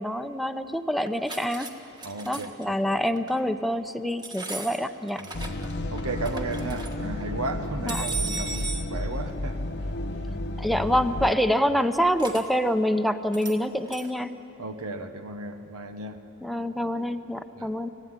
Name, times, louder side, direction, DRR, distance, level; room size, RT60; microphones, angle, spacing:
voice 1, 0.0-1.7 2.3-5.3 7.9-8.0 10.6-14.4 16.4-17.9, equal, ahead, 7 dB, 0.7 m, -26 dB
sound 1, 1.0-1.7 2.0-2.6 3.2-3.4 4.2-5.7 6.0-6.9 7.9-8.9 12.2-12.4 13.3-13.6 13.9-14.1, right 3 dB, 20° right, 1.6 m, -36 dB
voice 2, 2.0-2.9 5.2-5.5 5.9-9.9 11.2-11.4 14.6-16.2 17.6-17.7, right 3 dB, 90° right, 7 dB, 1.3 m, -35 dB
sound 2, 5.3-11.3, left 1 dB, 55° left, 0.9 m, -32 dB
25.0 x 16.5 x 9.7 m, 3.0 s
head